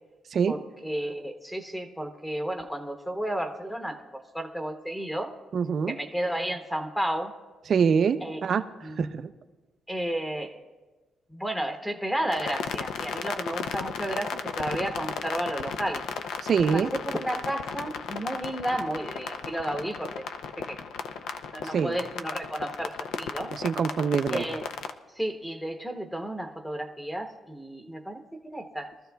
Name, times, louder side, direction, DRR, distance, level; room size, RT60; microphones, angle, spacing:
voice 1, 0.5-5.3 5.9-7.3 8.2-8.5 8.8-9.1 9.9-10.6 11.3-16.0 16.6-20.2 20.6-20.8 21.5-23.5 24.3-24.7 25.2-28.9, right 1 dB, 5° left, 5 dB, 0.8 m, -32 dB
voice 2, 5.5-5.9 7.7-9.3 16.4-16.9 21.6-22.0 23.6-24.4, right 6 dB, 45° right, 10 dB, 0.5 m, -25 dB
sound 1, 12.3-24.9, left 6 dB, 90° left, 0.5 m, -35 dB
22.5 x 13.5 x 2.3 m, 1.3 s
cardioid pair, 145°, 0 cm